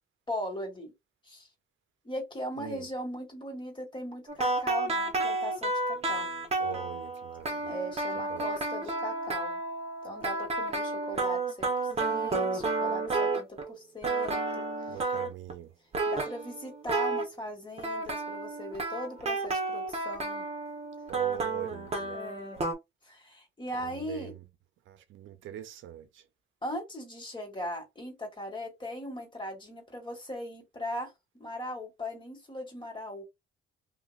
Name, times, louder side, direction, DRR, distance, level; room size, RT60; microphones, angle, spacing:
voice 1, 0.3-0.9 1.3-1.5 2.0-6.3 7.6-9.6 10.0-15.1 16.1-20.4 22.1-22.6 23.0-24.3 26.6-31.1 31.4-33.2, equal, 25° left, 1.9 m, -39 dB
sound 1, 4.3-13.8 14.0-15.5 15.9-17.3 17.8-22.7, right 3 dB, 30° right, 1.0 m, -31 dB
voice 2, 6.6-7.8 8.3-8.5 14.9-15.7 21.1-22.2 23.7-24.4 24.9-26.2, right 11 dB, 75° right, 0.5 m, -42 dB
2.9 x 2.8 x 2.4 m
cardioid pair, 90°, 20 cm